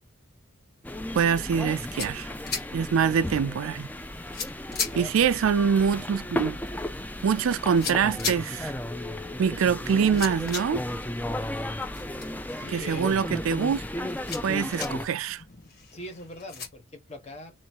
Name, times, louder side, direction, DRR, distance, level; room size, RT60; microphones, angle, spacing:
sound 1, 0.8-15.1, left 1 dB, 10° left, 0.4 m, -34 dB
voice 1, 1.1-2.3 2.7-3.9 5.0-6.6 7.2-8.7 9.4-10.8 12.7-13.8 14.4-15.4, right 7 dB, 75° right, 0.3 m, -24 dB
sound 2, 1.6-16.7, left 6 dB, 50° left, 1.8 m, -40 dB
voice 2, 4.7-5.1 12.5-13.1 15.9-17.5, left 1 dB, 35° left, 1.5 m, -41 dB
3.1 x 2.9 x 4.5 m
head